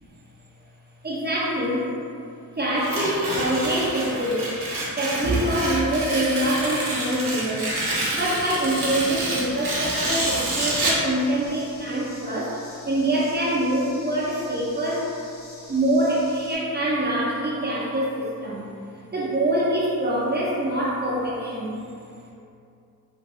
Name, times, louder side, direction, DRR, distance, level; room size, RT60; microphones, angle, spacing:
voice 1, 1.0-1.9 2.6-4.5 5.0-7.8 8.1-15.1 15.7-18.7 19.1-21.8, right 1 dB, 30° right, -5 dB, 0.4 m, -25 dB
Tearing, 2.7-11.1, right 1 dB, 65° right, 0.8 m, -28 dB
sound 1, 7.0-16.6, left 2 dB, 75° left, 0.7 m, -47 dB
3.5 x 2.3 x 2.4 m, 2.6 s
wide cardioid pair, 115°, 34 cm